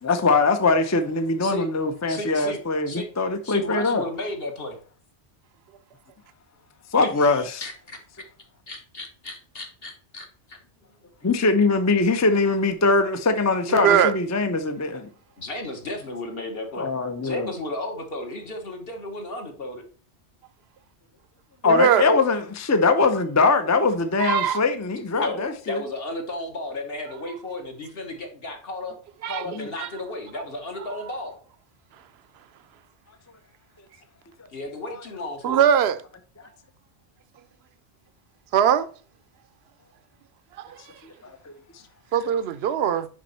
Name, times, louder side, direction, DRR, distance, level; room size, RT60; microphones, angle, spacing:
voice 1, 0.0-4.0 6.9-7.7 11.2-15.1 16.8-17.5 21.6-25.8 29.5-29.7 41.5-41.6, left 3 dB, 20° left, 0.4 m, -22 dB
voice 2, 1.4-1.7 2.1-2.6 2.9-3.1 3.4-4.8 7.0-8.0 8.7-10.6 15.4-16.9 17.2-19.8 25.2-29.0 29.2-31.4 34.5-35.6, left 1 dB, 55° left, 1.6 m, -34 dB
voice 3, 13.7-14.1 21.6-22.0 24.2-24.6 29.2-29.4 29.8-29.9 35.4-36.0 38.5-38.9 40.6-40.7 42.1-43.1, right 8 dB, 70° right, 0.8 m, -20 dB
6.1 x 5.2 x 4.2 m
omnidirectional pair, 1.2 m